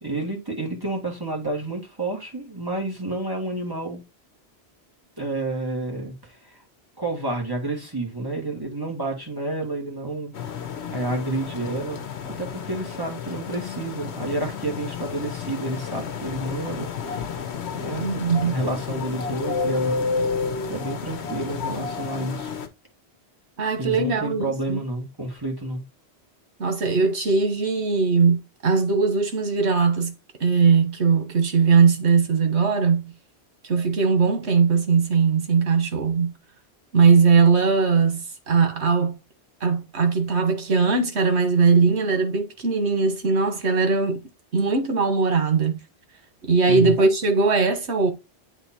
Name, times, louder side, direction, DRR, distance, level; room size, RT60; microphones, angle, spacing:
voice 1, 0.0-4.0 5.2-6.6 7.0-10.3 10.9-12.0 12.4-17.3 17.7-18.1 18.4-20.0 20.7-22.5 23.8-25.8 46.6-47.0, right 2 dB, 20° right, 1.9 m, -30 dB
sound 1, 10.3-22.7, left 5 dB, 85° left, 1.1 m, -31 dB
voice 2, 18.0-18.6 23.6-24.8 26.6-28.4 28.6-30.1 30.4-33.1 33.7-36.3 36.9-39.1 39.6-44.2 44.5-45.8 46.5-48.1, right 5 dB, 90° right, 1.5 m, -20 dB
8.2 x 3.0 x 4.2 m
omnidirectional pair, 1.1 m